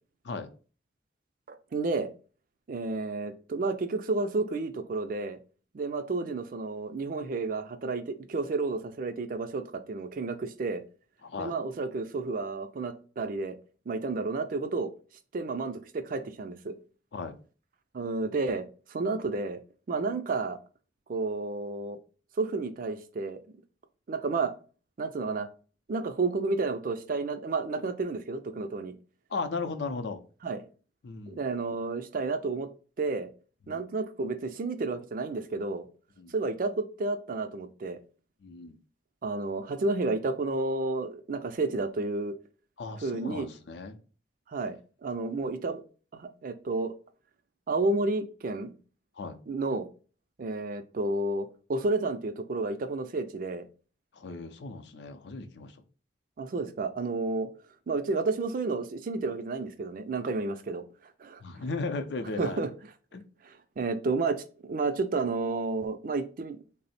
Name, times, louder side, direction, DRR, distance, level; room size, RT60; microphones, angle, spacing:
voice 1, 1.5-2.1 2.7-5.4 5.7-10.8 11.4-13.6 13.9-14.9 15.3-16.8 17.9-19.6 19.9-20.6 21.1-22.0 22.4-23.4 24.1-24.5 25.0-25.5 25.9-29.0 30.4-30.6 31.3-32.7 33.0-33.3 33.7-35.9 36.3-38.0 39.2-42.3 43.0-43.5 44.5-45.8 46.1-46.9 47.7-48.7 49.5-49.9 50.4-53.7 56.4-57.5 57.9-60.8 61.2-61.4 62.4-62.7 63.4-66.6, right 3 dB, 50° right, 9 dB, 0.4 m, -31 dB
voice 2, 11.2-11.5 17.1-17.3 29.3-30.2 31.0-31.4 33.7-33.8 36.2-36.3 38.4-38.8 42.8-44.0 49.2-49.4 54.1-55.7 61.4-62.6 63.1-63.2, left 3 dB, 70° left, 8 dB, 0.5 m, -36 dB
3.4 x 2.0 x 4.1 m, 0.37 s
head